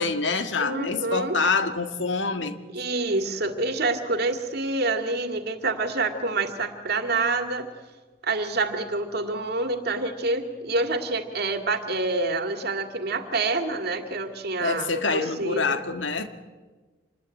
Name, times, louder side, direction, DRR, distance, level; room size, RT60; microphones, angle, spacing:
voice 1, 0.0-2.6 14.6-16.3, left 4 dB, 90° left, 8 dB, 1.9 m, -26 dB
voice 2, 0.6-1.4 2.7-7.7 8.2-15.8, right 3 dB, 60° right, 6 dB, 2.3 m, -27 dB
27.0 x 20.5 x 9.1 m, 1.4 s
head